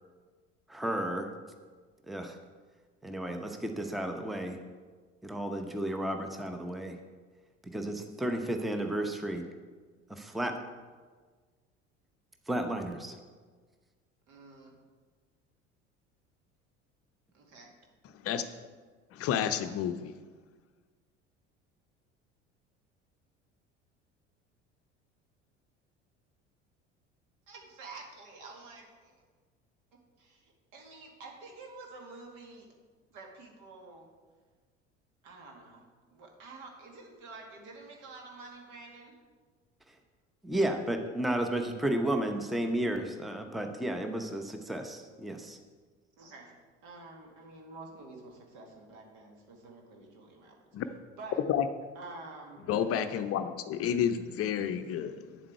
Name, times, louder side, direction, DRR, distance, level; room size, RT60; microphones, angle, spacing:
voice 1, 0.7-1.3 2.1-2.4 3.0-4.6 5.2-7.0 7.6-9.5 10.1-10.6 12.5-13.2 39.9-40.0 40.4-45.6, right 1 dB, ahead, 5 dB, 0.8 m, -33 dB
voice 2, 14.3-14.7 17.3-17.7 27.5-29.1 29.9-32.7 33.1-34.1 35.2-35.9 36.1-39.2 46.2-46.5 46.8-50.6 51.2-51.4 52.0-52.7, right 3 dB, 60° right, 1 dB, 2.0 m, -49 dB
voice 3, 19.1-20.1 50.7-50.8 51.5-51.7 52.7-55.4, left 9 dB, 40° left, 9 dB, 0.6 m, -30 dB
9.2 x 7.5 x 4.6 m, 1.5 s
figure-of-eight pair, 65°, 35 cm